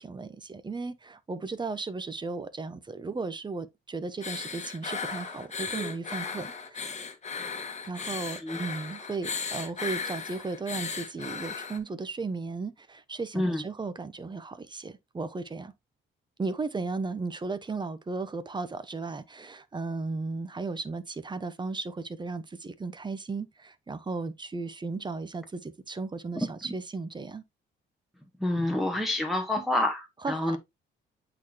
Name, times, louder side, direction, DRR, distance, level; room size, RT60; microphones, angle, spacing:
voice 1, 0.0-7.0 7.8-15.7 16.4-27.4 30.2-30.6, right 3 dB, 20° right, 0.8 m, -35 dB
sound 1, 4.2-11.8, left 5 dB, 35° left, 1.4 m, -36 dB
voice 2, 26.4-26.7 28.4-30.6, left 1 dB, ahead, 1.3 m, -28 dB
8.2 x 4.0 x 2.9 m
cardioid pair, 90°, 20 cm